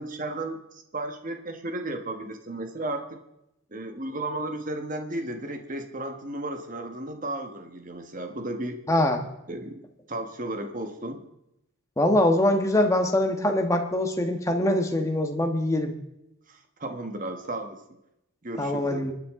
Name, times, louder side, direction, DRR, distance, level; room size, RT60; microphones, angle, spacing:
voice 1, 0.0-3.2 3.7-8.8 9.5-9.8 10.1-11.2 16.5-17.8 18.4-19.1, right 1 dB, 40° right, 5 dB, 1.4 m, -34 dB
voice 2, 8.9-9.2 12.0-15.9 18.6-19.1, left 1 dB, 15° left, 4 dB, 1.3 m, -23 dB
28.0 x 9.7 x 3.7 m, 0.86 s
head